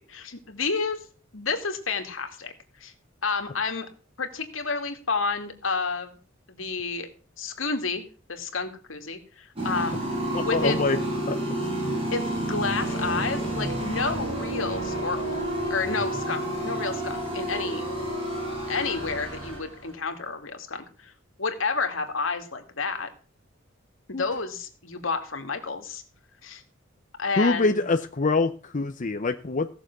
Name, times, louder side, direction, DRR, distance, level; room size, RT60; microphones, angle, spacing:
voice 1, 0.1-1.0 1.3-2.5 2.8-2.9 3.2-3.9 4.2-6.2 6.5-7.1 7.4-10.0 10.4-10.8 12.1-15.4 15.7-17.9 18.7-21.1 21.4-23.1 24.1-26.0 26.4-26.6 27.2-27.8, left 4 dB, 80° left, 5 dB, 2.3 m, -30 dB
sound 1, 9.6-19.9, right 1 dB, 30° right, 6.9 m, -30 dB
voice 2, 10.3-11.0 11.3-11.4 24.1-24.2 27.4-29.7, left 3 dB, 40° left, 7 dB, 0.7 m, -24 dB
16.5 x 7.0 x 6.0 m, 0.38 s
head